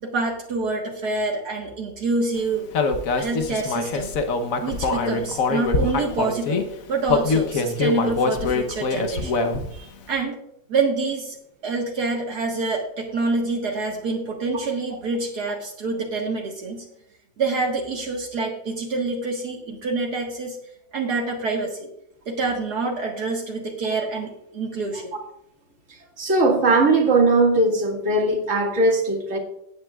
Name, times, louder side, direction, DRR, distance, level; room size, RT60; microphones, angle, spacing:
voice 1, 0.0-2.7 3.1-4.1 4.6-9.4 9.7-10.4 10.7-11.4 11.6-16.9 17.4-20.6 20.9-21.9 22.3-25.2, right 3 dB, 70° right, -1 dB, 2.0 m, -27 dB
Human voice, 2.7-6.6 7.1-9.8, left 4 dB, 55° left, 1.3 m, -23 dB
voice 2, 26.2-29.4, right 2 dB, 45° right, 1 dB, 2.3 m, -19 dB
17.0 x 9.0 x 2.4 m, 0.77 s
omnidirectional pair, 1.8 m